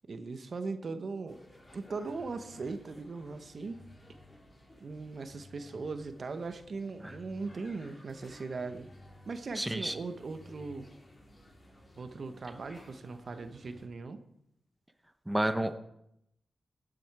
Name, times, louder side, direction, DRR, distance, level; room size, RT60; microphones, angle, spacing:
voice 1, 0.1-1.4 1.7-3.8 4.8-8.9 9.2-10.9 12.0-14.2, right 4 dB, 60° right, 9 dB, 1.0 m, -39 dB
sound 1, 1.3-13.9, left 1 dB, 35° left, 4.3 m, -55 dB
voice 2, 9.6-9.9 15.3-15.8, right 1 dB, 10° right, 9 dB, 1.0 m, -30 dB
17.0 x 7.8 x 4.7 m, 0.79 s
cardioid pair, 65°, 0 cm